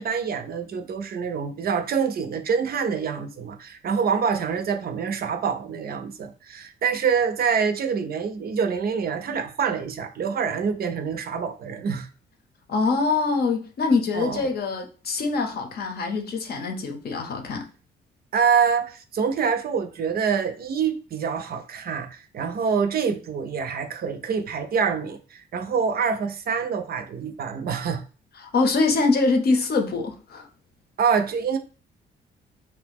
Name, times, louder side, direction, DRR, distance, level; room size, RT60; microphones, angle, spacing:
voice 1, 0.0-12.1 14.1-14.5 18.3-28.0 31.0-31.6, right 6 dB, 50° right, 0.5 m, -26 dB
voice 2, 12.7-17.6 28.4-30.5, left 3 dB, 55° left, 0.7 m, -24 dB
2.7 x 2.1 x 3.4 m
cardioid pair, 90°, 20 cm